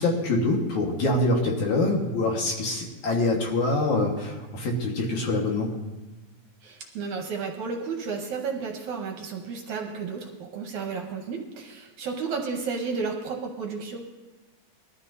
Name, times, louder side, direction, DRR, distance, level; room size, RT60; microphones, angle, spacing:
voice 1, 0.0-5.7, left 2 dB, 60° left, -1 dB, 2.8 m, -25 dB
voice 2, 6.6-14.2, right 5 dB, 70° right, 2 dB, 2.1 m, -32 dB
21.0 x 13.0 x 2.7 m, 1.2 s
omnidirectional pair, 4.1 m